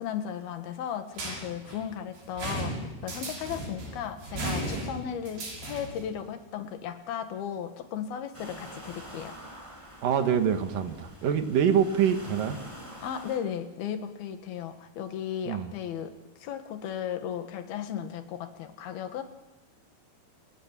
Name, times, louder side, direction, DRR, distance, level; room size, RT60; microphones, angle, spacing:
voice 1, 0.0-9.4 13.0-19.2, left 9 dB, 75° left, 8 dB, 3.5 m, -36 dB
sound 1, 1.1-6.1, right 1 dB, 80° right, 8.5 m, -36 dB
sound 2, 8.3-13.4, equal, 5° right, 7.3 m, -46 dB
voice 2, 10.0-12.6 15.4-15.7, right 8 dB, 65° right, 7 dB, 3.2 m, -25 dB
29.5 x 19.5 x 7.4 m, 1.1 s
omnidirectional pair, 4.5 m